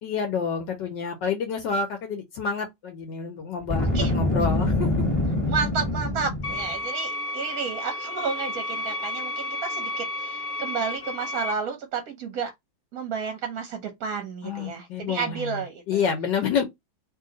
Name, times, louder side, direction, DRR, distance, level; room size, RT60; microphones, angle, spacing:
voice 1, 0.0-4.9 14.4-15.5 15.9-16.6, left 6 dB, 65° left, 1.3 m, -28 dB
Boom, 3.6-6.7, left 1 dB, 20° left, 1.2 m, -25 dB
voice 2, 3.8-4.1 5.5-12.5 12.9-16.0, right 5 dB, 60° right, 1.0 m, -31 dB
sound 1, 6.4-11.5, left 2 dB, 35° left, 1.1 m, -32 dB
3.0 x 2.9 x 3.8 m
omnidirectional pair, 2.2 m